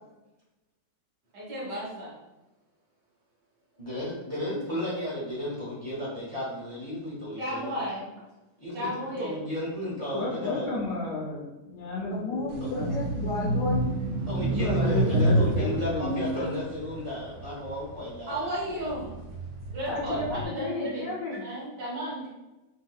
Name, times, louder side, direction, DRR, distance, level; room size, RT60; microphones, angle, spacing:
voice 1, 1.3-2.1 7.4-8.1 8.7-9.4 18.3-19.1 19.7-21.0 21.4-22.3, equal, 85° right, -6 dB, 1.8 m, -33 dB
voice 2, 3.8-7.8 8.6-8.9 9.2-10.7 14.3-18.8, left 1 dB, 30° right, -7 dB, 0.7 m, -34 dB
voice 3, 10.1-12.9 14.5-16.5, left 2 dB, 80° left, -6 dB, 1.3 m, -32 dB
voice 4, 12.1-14.0 19.9-21.4, left 2 dB, 55° left, -4 dB, 1.1 m, -33 dB
sound 1, 12.5-18.1 18.6-20.4, right 1 dB, 65° right, 0.9 m, -28 dB
3.7 x 2.7 x 2.2 m, 1.0 s
omnidirectional pair, 1.8 m